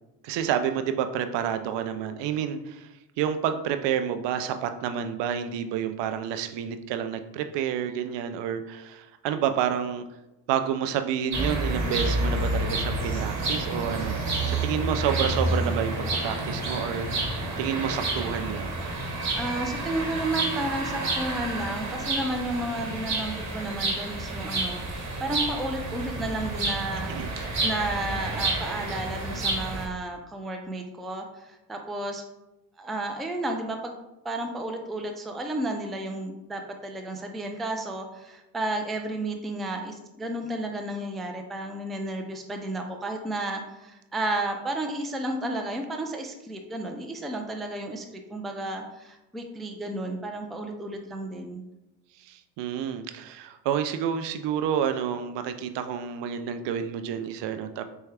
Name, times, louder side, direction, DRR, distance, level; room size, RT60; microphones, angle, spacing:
voice 1, 0.2-2.9 3.2-10.1 10.5-14.2 14.5-18.7 27.1-27.3 52.2-57.8, right 8 dB, 65° right, 9 dB, 0.5 m, -29 dB
sound 1, 11.3-29.9, right 2 dB, 35° right, 1.1 m, -29 dB
voice 2, 19.3-32.2 32.8-34.0 34.2-51.6, right 1 dB, ahead, 3 dB, 0.3 m, -32 dB
4.3 x 2.3 x 3.3 m, 0.96 s
supercardioid pair, 65°, 46 cm